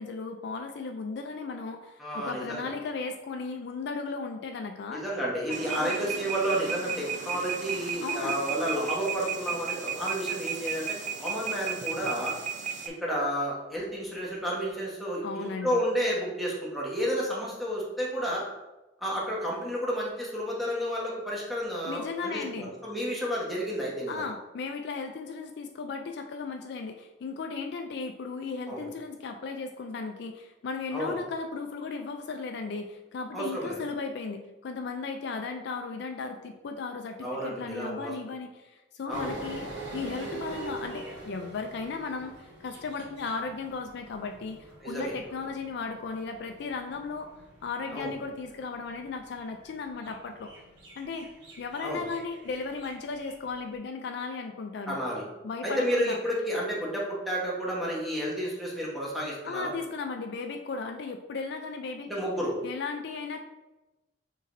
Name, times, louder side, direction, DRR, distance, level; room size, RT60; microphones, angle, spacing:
voice 1, 0.0-5.0 5.7-6.0 8.0-8.3 15.2-15.8 21.9-22.7 24.1-39.7 39.9-47.3 47.6-50.5 51.0-51.3 51.6-55.0 55.4-56.2 59.4-62.2 62.6-63.4, left 4 dB, 65° left, 5 dB, 0.4 m, -36 dB
voice 2, 2.0-2.7 4.9-12.3 12.8-18.4 19.0-24.2 28.7-28.8 30.9-31.1 33.3-33.8 37.2-38.1 39.1-39.3 44.8-45.1 45.4-45.5 47.9-48.1 51.8-52.0 54.9-55.2 55.6-59.7 62.1-62.5, equal, ahead, -6 dB, 1.1 m, -31 dB
sound 1, 5.5-12.9, right 7 dB, 40° right, 0.4 m, -34 dB
sound 2, 39.1-53.7, right 2 dB, 80° right, 1.4 m, -45 dB
6.5 x 3.0 x 2.6 m, 1.1 s
head